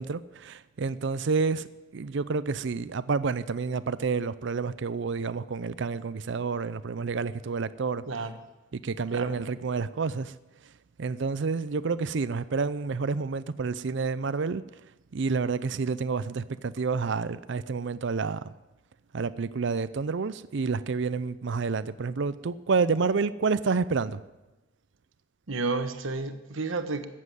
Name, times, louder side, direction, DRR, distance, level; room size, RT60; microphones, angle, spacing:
voice 1, 0.0-1.7 1.9-8.0 8.7-10.3 11.0-14.6 15.1-18.5 19.1-24.2, right 4 dB, 65° right, 0.5 m, -29 dB
voice 2, 8.1-8.4 9.1-9.4 25.5-27.1, right 3 dB, 85° right, 1.3 m, -31 dB
14.5 x 7.5 x 9.2 m
head